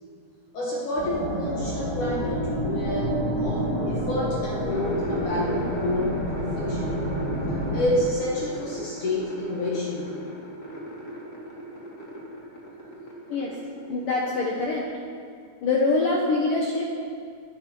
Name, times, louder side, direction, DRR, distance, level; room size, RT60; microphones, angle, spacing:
voice 1, 0.5-7.1 7.7-10.2, left 1 dB, 55° left, -4 dB, 2.2 m, -29 dB
sound 1, 1.0-7.9, equal, 5° left, 3.5 m, -29 dB
sound 2, 4.7-13.6 13.8-14.6, right 1 dB, 25° left, 2.1 m, -36 dB
voice 2, 13.9-14.8 15.6-16.9, left 3 dB, 75° left, -2 dB, 2.0 m, -24 dB
22.0 x 12.5 x 4.6 m, 2.2 s
omnidirectional pair, 5.9 m